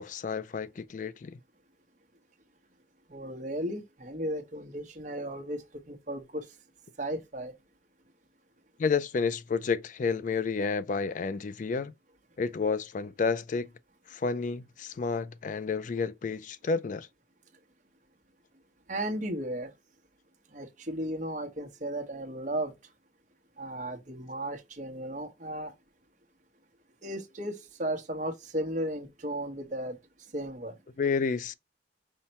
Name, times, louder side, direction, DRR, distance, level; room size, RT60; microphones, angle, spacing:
voice 1, 0.0-1.4 8.8-11.9 12.4-13.7 14.1-17.1 31.0-31.5, left 5 dB, 45° left, 0.3 m, -30 dB
voice 2, 3.1-6.5 7.0-7.5 18.9-19.7 20.5-22.7 23.6-25.7 27.0-30.0 30.3-30.7, right 1 dB, 45° right, 1.1 m, -35 dB
5.6 x 2.2 x 4.1 m
head